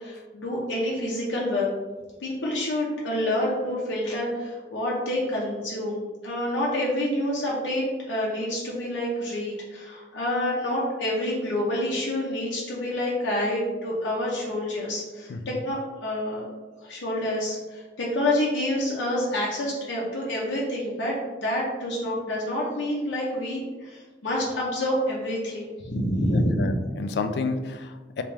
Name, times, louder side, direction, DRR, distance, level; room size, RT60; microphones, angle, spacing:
voice 1, 0.0-1.7 2.2-16.5 16.8-21.1 21.4-26.7, left 1 dB, 90° left, -5 dB, 0.7 m, -28 dB
voice 2, 15.3-15.6 26.3-28.2, left 3 dB, 65° left, 8 dB, 0.3 m, -30 dB
3.4 x 2.9 x 3.2 m, 1.3 s
head